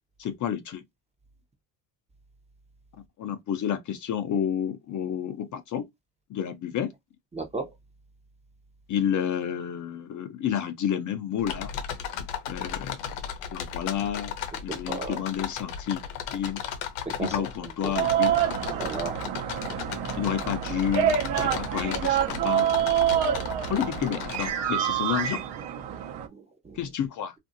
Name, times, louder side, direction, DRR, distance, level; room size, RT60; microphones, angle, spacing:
voice 1, 0.2-0.8 3.2-5.9 6.3-6.9 8.9-11.7 12.5-13.0 13.5-14.3 14.6-16.0 16.3-16.6 17.2-18.3 20.2-22.7 23.7-25.4 26.7-27.3, left 9 dB, 45° left, 0.6 m, -30 dB
voice 2, 7.3-7.7 14.7-15.2 17.2-17.5 17.8-17.9 18.8-19.2 26.3-26.8, right 4 dB, 15° right, 0.6 m, -34 dB
sound 1, 11.4-24.5, left 8 dB, 90° left, 0.8 m, -35 dB
sound 2, 17.9-26.3, right 9 dB, 65° right, 0.8 m, -27 dB
2.6 x 2.5 x 2.6 m
cardioid pair, 105°, 43 cm